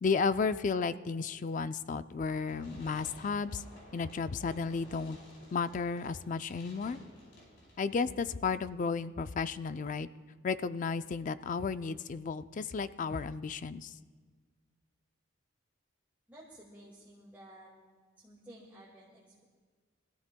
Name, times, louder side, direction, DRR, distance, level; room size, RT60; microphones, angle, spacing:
voice 1, 0.0-3.6 3.9-5.2 5.5-7.0 7.8-10.1 10.4-13.9, left 5 dB, 40° left, 13 dB, 0.3 m, -33 dB
Fireworks, 2.3-8.3, left 1 dB, 65° left, 4.6 m, -54 dB
voice 2, 16.3-17.7 18.2-19.4, right 1 dB, 10° right, -6 dB, 1.9 m, -53 dB
23.5 x 14.5 x 2.2 m, 1.5 s
head